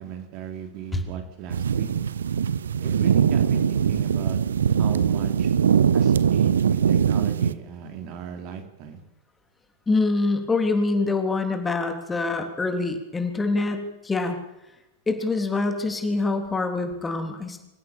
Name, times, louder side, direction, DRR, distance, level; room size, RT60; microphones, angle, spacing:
voice 1, 0.0-1.9 2.8-4.4 4.8-5.5 5.9-9.0, right 8 dB, 40° right, 5 dB, 3.5 m, -36 dB
sound 1, 1.5-7.5, right 7 dB, 65° right, 0.8 m, -21 dB
voice 2, 9.9-14.4 15.1-17.6, left 3 dB, 15° left, 5 dB, 3.4 m, -25 dB
26.0 x 15.5 x 7.1 m, 0.92 s
figure-of-eight pair, 90°, 0 cm